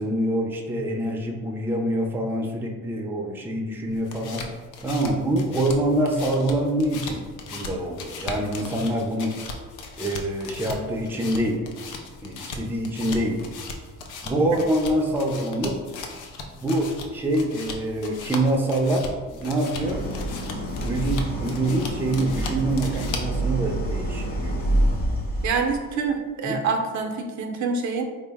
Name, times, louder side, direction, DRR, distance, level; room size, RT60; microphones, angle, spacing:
voice 1, 0.0-4.5 4.8-7.2 7.5-9.4 10.0-11.6 12.2-13.4 14.2-15.8 16.6-19.1 19.4-20.0 20.8-24.6 26.4-26.5, right 1 dB, 5° right, 2 dB, 0.4 m, -25 dB
sound 1, 3.9-23.4, left 3 dB, 90° left, 0.5 m, -38 dB
Idling, 19.8-25.9, right 1 dB, 30° left, 0.9 m, -27 dB
voice 2, 25.4-28.0, right 4 dB, 70° right, 4 dB, 0.5 m, -26 dB
3.7 x 2.1 x 3.4 m, 1.4 s
cardioid pair, 90°, 30 cm